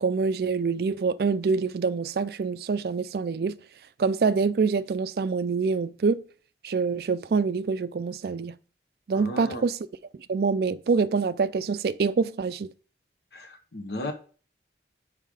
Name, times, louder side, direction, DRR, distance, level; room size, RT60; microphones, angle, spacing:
voice 1, 0.0-3.6 4.0-6.2 6.6-8.5 9.1-9.8 10.3-12.7, right 5 dB, 55° right, 0.4 m, -25 dB
voice 2, 9.1-9.7 13.3-14.1, left 1 dB, 65° left, 1.1 m, -35 dB
5.6 x 4.9 x 4.8 m
head